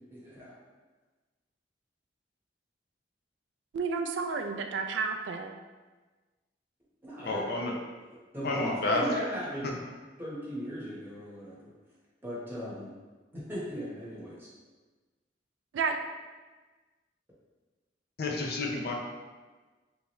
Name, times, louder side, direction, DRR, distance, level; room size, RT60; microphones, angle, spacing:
voice 1, 0.1-0.5 7.0-7.6 8.3-9.7 10.2-11.7 12.2-12.9 13.3-14.5, equal, 10° right, -8 dB, 1.1 m, -37 dB
voice 2, 3.7-5.5 15.7-16.0, right 5 dB, 70° right, 5 dB, 0.3 m, -31 dB
voice 3, 7.2-7.7 8.4-9.0 9.6-9.7 18.2-18.9, left 2 dB, 60° left, 0 dB, 0.5 m, -30 dB
3.5 x 3.0 x 3.1 m, 1.3 s
head